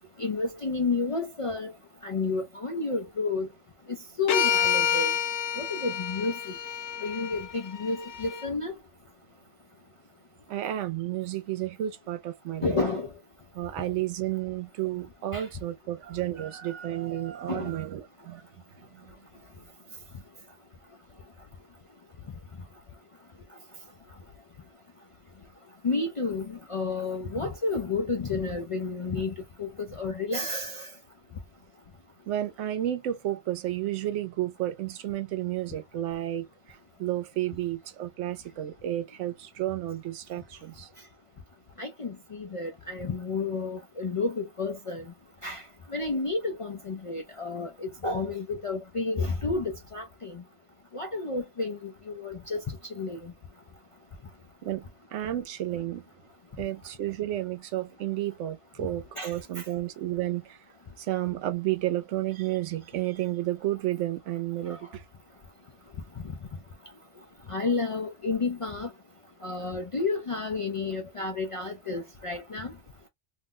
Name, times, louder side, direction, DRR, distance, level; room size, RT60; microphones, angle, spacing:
voice 1, 0.2-1.7 2.0-3.5 3.9-5.1 5.6-6.6 7.0-8.7 12.6-13.1 15.3-15.5 17.5-17.7 25.8-30.9 41.8-45.1 45.4-45.6 45.9-50.4 50.9-53.3 59.2-59.7 64.7-64.8 66.2-66.3 67.5-68.9 69.4-72.7, left 3 dB, 55° left, 0.3 m, -31 dB
sound 1, 4.3-8.5, left 8 dB, 75° left, 0.9 m, -29 dB
voice 2, 10.5-12.8 13.5-18.4 32.3-36.5 37.0-40.9 54.6-54.8 55.1-56.0 56.6-60.6 61.0-65.0, right 13 dB, 90° right, 1.0 m, -31 dB
2.7 x 2.1 x 3.7 m
omnidirectional pair, 1.2 m